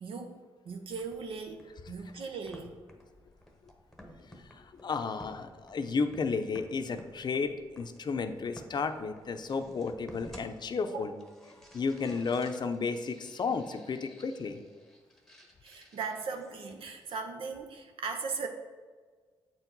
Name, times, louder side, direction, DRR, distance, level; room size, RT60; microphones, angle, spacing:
voice 1, 0.0-2.7 10.9-11.1 15.6-18.5, right 5 dB, 75° right, 5 dB, 0.7 m, -38 dB
sound 1, 0.9-16.9, equal, 5° left, 1.0 m, -55 dB
voice 2, 4.5-11.1 11.7-14.6, left 4 dB, 50° left, 8 dB, 0.6 m, -33 dB
7.8 x 4.5 x 4.0 m, 1.5 s
cardioid pair, 70°, 9 cm